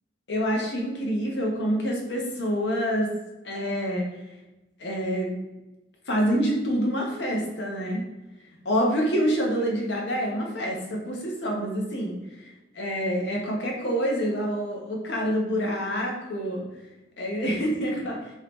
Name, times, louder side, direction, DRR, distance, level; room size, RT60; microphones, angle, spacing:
voice 1, 0.3-3.1 3.4-4.1 4.8-5.3 6.1-8.0 8.6-12.5 12.7-16.7 17.2-18.2, equal, 85° left, -1 dB, 0.8 m, -27 dB
2.9 x 2.7 x 3.4 m, 1.0 s
head